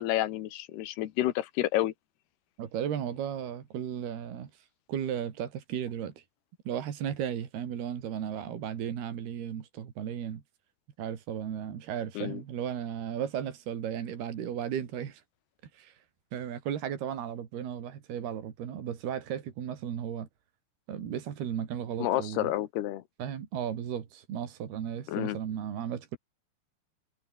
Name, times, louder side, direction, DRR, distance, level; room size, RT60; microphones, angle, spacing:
voice 1, 0.0-1.9 12.2-12.4 22.0-23.0 25.1-25.4, left 14 dB, 90° left, 3.3 m, -29 dB
voice 2, 2.6-4.5 4.9-6.1 6.7-10.4 11.0-15.2 15.7-15.9 16.3-20.3 20.9-22.5 23.2-26.2, right 9 dB, 75° right, 4.7 m, -35 dB
omnidirectional pair, 4.5 m